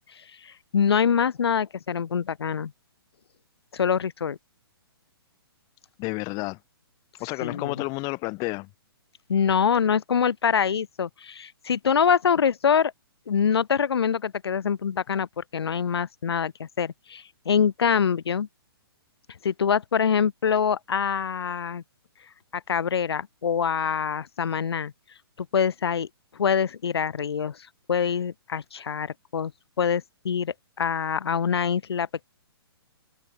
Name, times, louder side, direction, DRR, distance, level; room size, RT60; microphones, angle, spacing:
voice 1, 0.1-2.7 3.7-4.4 7.4-7.7 9.3-12.9 13.3-18.5 19.4-21.8 22.5-24.9 25.4-26.1 26.3-27.6 27.9-29.5 29.8-32.2, left 7 dB, 80° left, 1.4 m, -25 dB
voice 2, 6.0-6.6 7.2-8.7, left 27 dB, 30° left, 3.9 m, -30 dB
open air
hypercardioid pair, 145°, 13 cm